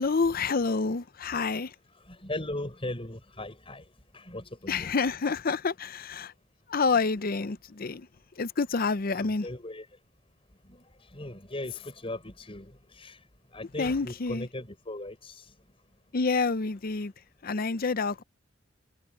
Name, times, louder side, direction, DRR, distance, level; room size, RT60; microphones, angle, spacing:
voice 1, 0.0-1.7 4.7-6.3 6.7-8.1 8.4-9.5 13.8-14.5 16.1-17.1 17.4-18.2, left 4 dB, 45° left, 0.6 m, -28 dB
voice 2, 1.9-4.9 7.1-7.3 9.1-9.9 10.6-13.2 13.5-15.5, left 1 dB, 30° left, 5.8 m, -39 dB
head